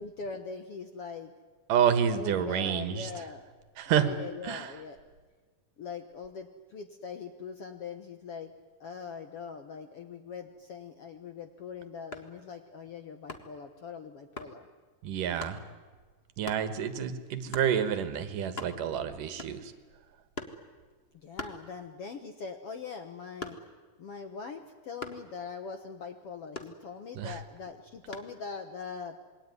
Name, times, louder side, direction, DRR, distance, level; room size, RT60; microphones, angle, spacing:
voice 1, 0.0-1.3 2.1-3.4 3.9-5.0 5.8-8.5 8.8-14.7 21.1-23.6 24.0-29.2, left 5 dB, 60° left, 7 dB, 1.6 m, -42 dB
voice 2, 1.7-3.1 3.8-4.1 4.4-4.7 15.0-15.6 16.4-19.7 27.2-27.4, right 8 dB, 70° right, 11 dB, 2.9 m, -28 dB
sound 1, 12.1-12.4 13.3-13.6 14.4-14.6 15.4-15.6 16.4-16.7 17.5-17.8 18.2-18.3 18.4-19.0 19.4-19.8 20.3-20.7 21.4-22.1 22.5-23.9 25.0-25.3 26.5-27.2 28.1-28.4, left 3 dB, 40° left, 0.8 m, -42 dB
27.5 x 21.5 x 9.5 m, 1.4 s
omnidirectional pair, 4.1 m